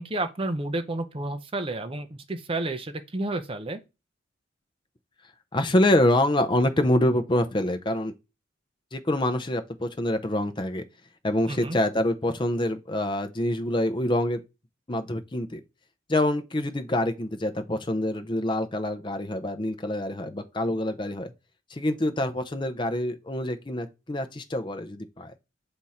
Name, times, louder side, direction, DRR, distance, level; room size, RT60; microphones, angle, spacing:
voice 1, 0.0-3.8 11.5-11.8, right 2 dB, 30° right, 0.6 m, -31 dB
voice 2, 5.5-8.1 8.9-10.8 11.2-14.4 14.9-15.6 16.1-21.3 21.7-25.3, left 1 dB, 25° left, 0.7 m, -26 dB
7.7 x 3.6 x 4.2 m
head